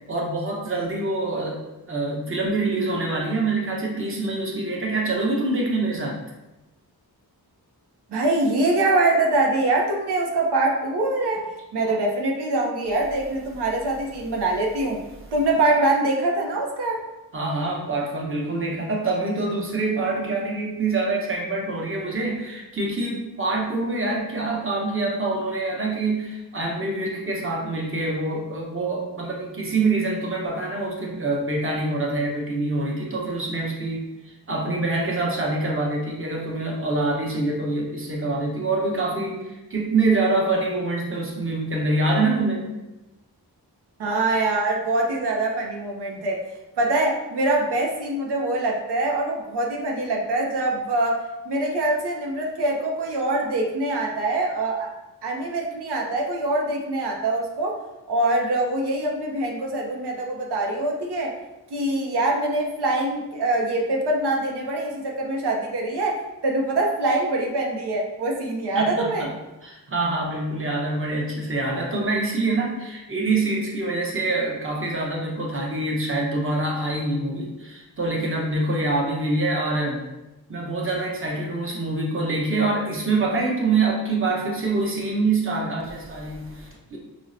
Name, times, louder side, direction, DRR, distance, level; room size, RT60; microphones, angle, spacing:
voice 1, 0.1-1.6 1.9-6.2 17.3-42.7 68.7-69.3 69.6-80.0 80.5-87.0, right 2 dB, 35° right, -3 dB, 0.8 m, -25 dB
voice 2, 8.1-15.0 15.3-17.1 44.0-46.5 46.8-54.9 55.2-57.8 58.1-61.4 61.7-69.3, right 2 dB, 90° right, 0 dB, 0.6 m, -24 dB
5.2 x 2.1 x 2.5 m, 1.0 s
wide cardioid pair, 85°, 39 cm